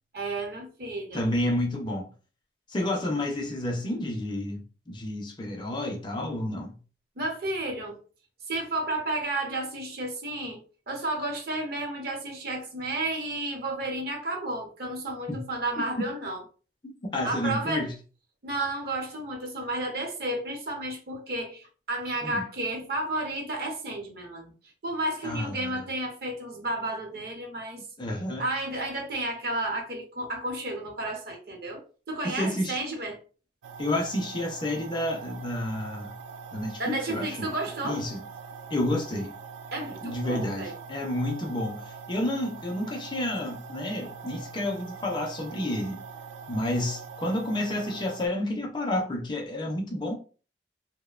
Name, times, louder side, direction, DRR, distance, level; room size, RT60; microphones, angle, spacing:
voice 1, 0.1-1.3 7.2-8.0 8.5-10.6 10.9-16.4 17.2-17.9 18.4-24.5 24.8-27.8 28.4-33.2 36.8-38.1 39.7-40.7, right 2 dB, 60° right, 0.8 m, -32 dB
voice 2, 1.1-2.1 2.7-6.8 15.3-15.4 16.0-16.1 16.8-17.9 22.2-22.4 25.2-25.9 28.0-28.4 32.2-32.8 33.8-36.2 36.5-37.5 37.8-38.2 38.7-39.3 40.0-46.0 46.5-50.1, left 1 dB, 25° left, 0.4 m, -30 dB
sound 1, 33.6-48.3, right 5 dB, 85° right, 0.3 m, -43 dB
2.5 x 2.1 x 2.3 m
head